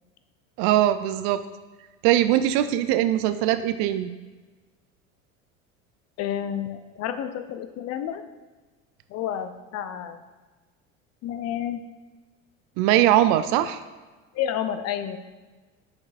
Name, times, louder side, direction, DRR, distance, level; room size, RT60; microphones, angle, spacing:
voice 1, 0.6-1.4 2.0-4.1 12.8-13.8, right 12 dB, 50° right, 11 dB, 0.5 m, -21 dB
voice 2, 6.2-8.2 9.1-10.2 11.2-11.8 14.3-15.2, left 10 dB, 40° left, 9 dB, 0.6 m, -30 dB
8.5 x 6.1 x 2.5 m, 1.3 s
figure-of-eight pair, 70°, 40 cm